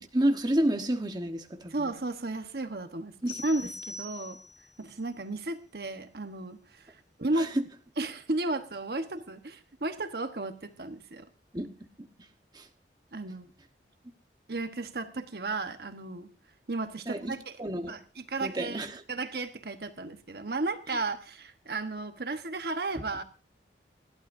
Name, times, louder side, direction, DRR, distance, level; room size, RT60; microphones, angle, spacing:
voice 1, 0.0-1.9 3.2-3.4 7.4-7.6 11.5-11.7 12.5-12.7 17.1-18.0 18.4-19.0 20.9-21.0, right 1 dB, 25° right, 5 dB, 1.2 m, -30 dB
voice 2, 1.7-3.1 3.4-4.4 4.8-7.5 8.0-11.3 13.1-13.5 14.5-16.3 16.7-17.6 17.9-18.8 19.1-23.2, right 2 dB, 60° right, 8 dB, 1.2 m, -34 dB
sound 1, 3.3-4.8, left 3 dB, 55° left, 3.2 m, -43 dB
29.5 x 11.5 x 2.7 m, 0.33 s
head